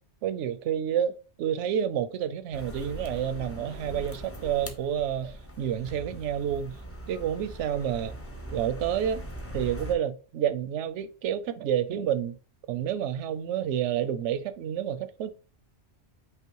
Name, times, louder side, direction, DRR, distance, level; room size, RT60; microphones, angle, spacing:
voice 1, 0.2-6.8 7.1-8.1 8.5-9.2 9.5-12.4 12.7-15.3, right 9 dB, 85° right, 0.9 m, -29 dB
sound 1, 2.5-10.0, equal, 15° left, 0.5 m, -41 dB
5.5 x 2.1 x 4.5 m
omnidirectional pair, 1.2 m